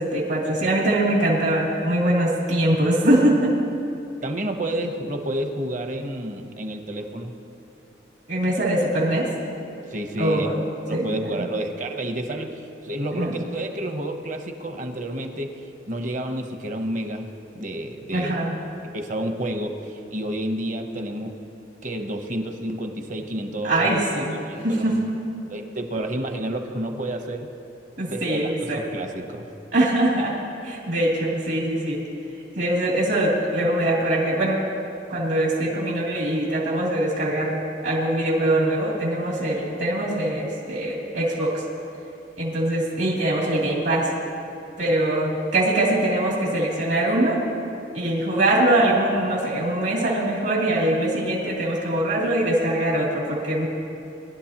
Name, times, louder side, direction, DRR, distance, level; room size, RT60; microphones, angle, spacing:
voice 1, 0.0-3.5 8.3-9.3 10.2-10.6 10.9-11.1 11.4-11.5 13.1-13.3 18.1-18.6 23.6-24.3 24.6-25.1 28.0-28.8 29.7-30.4 30.6-32.0 32.5-34.6 35.1-41.6 42.4-44.1 44.8-47.4 47.9-53.7, right 1 dB, 70° right, -5 dB, 2.9 m, -22 dB
voice 2, 4.2-7.4 9.9-10.5 10.9-15.6 15.9-17.3 17.5-18.4 18.8-21.4 21.8-24.0 24.4-24.8 25.5-27.5 28.1-29.5, right 1 dB, 45° right, 5 dB, 0.9 m, -30 dB
22.0 x 11.5 x 3.0 m, 2.7 s
head